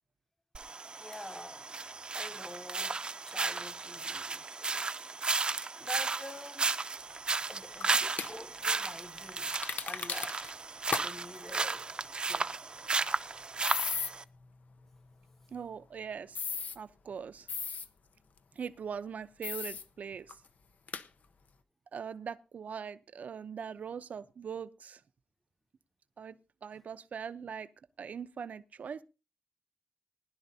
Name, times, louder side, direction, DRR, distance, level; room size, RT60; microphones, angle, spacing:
sound 1, 0.5-14.2, right 4 dB, 35° right, 0.6 m, -34 dB
voice 1, 1.0-1.8 2.1-4.9 5.3-6.8 7.5-10.5 11.0-11.9 12.2-12.5, left 1 dB, 10° left, 0.9 m, -47 dB
sound 2, 7.8-8.3 9.5-10.5 10.9-11.1 11.4-11.5 13.6-14.1 16.4-16.8 17.5-17.9 19.4-19.8 20.3-20.4 20.9-21.0, left 6 dB, 70° left, 0.8 m, -35 dB
voice 2, 15.5-17.5 18.5-20.4 21.9-25.0 26.2-27.7 28.0-29.0, right 7 dB, 70° right, 0.7 m, -41 dB
20.0 x 11.5 x 2.8 m
wide cardioid pair, 145°, 3 cm